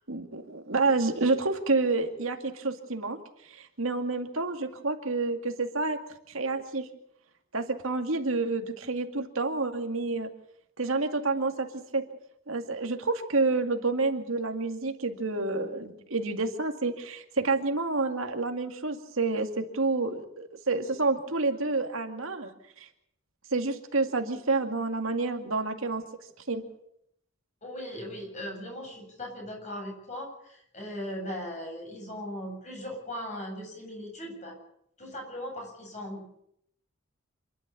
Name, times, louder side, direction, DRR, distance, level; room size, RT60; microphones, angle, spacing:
voice 1, 0.1-3.2 3.5-6.0 6.3-6.9 7.5-10.3 10.8-12.0 12.5-22.5 22.8-22.9 23.5-26.0 26.5-26.6, right 3 dB, 75° right, 5 dB, 2.3 m, -29 dB
voice 2, 27.6-34.6 35.0-36.4, equal, 35° left, 1 dB, 7.8 m, -38 dB
27.0 x 12.0 x 8.5 m, 0.74 s
head